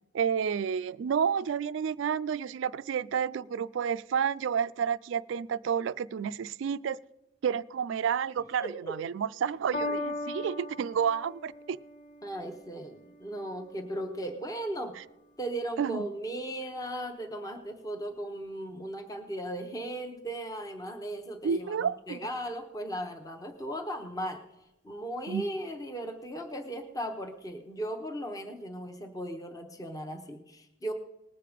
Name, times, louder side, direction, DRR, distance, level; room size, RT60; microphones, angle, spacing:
voice 1, 0.1-7.0 7.4-11.8 15.0-15.1 15.8-16.0 21.4-22.2 25.3-25.4, right 7 dB, 65° right, 0.3 m, -30 dB
voice 2, 8.6-8.9 12.2-15.0 15.4-24.4 24.8-30.9, right 1 dB, 15° left, 0.9 m, -37 dB
Piano, 9.7-16.3 17.1-17.2, left 2 dB, 55° left, 1.7 m, -41 dB
19.5 x 7.5 x 5.0 m
head